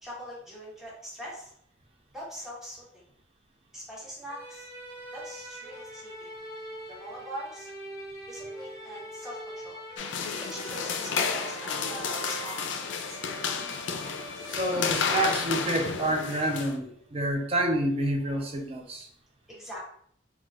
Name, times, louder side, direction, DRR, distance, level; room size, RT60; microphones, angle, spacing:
voice 1, 0.0-1.5 2.1-2.8 3.7-4.7 5.1-6.3 6.9-7.7 8.3-9.8 10.4-13.2 19.5-19.8, equal, ahead, -6 dB, 1.0 m, -42 dB
sound 1, 4.3-16.4, right 1 dB, 20° left, 1.3 m, -43 dB
sound 2, 10.0-16.7, left 6 dB, 80° left, 0.3 m, -31 dB
voice 2, 14.5-19.1, right 1 dB, 30° right, 2 dB, 0.5 m, -28 dB
3.8 x 2.3 x 2.3 m, 0.65 s
head